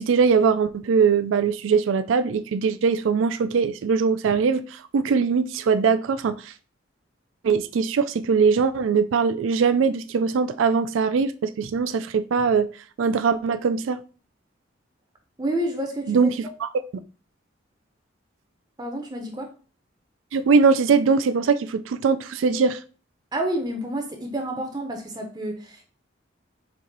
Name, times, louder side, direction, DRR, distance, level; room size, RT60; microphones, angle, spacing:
voice 1, 0.0-6.5 7.4-12.7 13.0-14.0 16.1-16.7 20.3-22.8, right 5 dB, 90° right, 0.4 m, -21 dB
voice 2, 15.4-16.3 18.8-19.5 23.3-25.8, right 1 dB, 20° right, 0.6 m, -29 dB
4.4 x 2.6 x 3.9 m
head